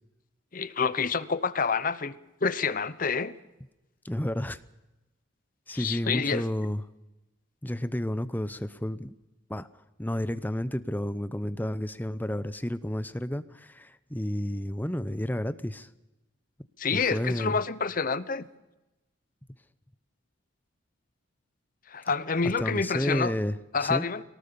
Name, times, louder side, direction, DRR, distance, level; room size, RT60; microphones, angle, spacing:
voice 1, 0.5-2.2 2.4-3.3 5.7-6.5 16.8-18.4 21.9-23.3 23.7-24.2, left 5 dB, 45° left, 0.9 m, -28 dB
voice 2, 4.0-4.6 5.7-6.8 7.6-9.1 9.5-9.7 10.0-15.9 16.9-17.6 22.6-23.6 23.8-24.1, left 1 dB, 10° left, 0.7 m, -31 dB
23.0 x 18.5 x 6.9 m
head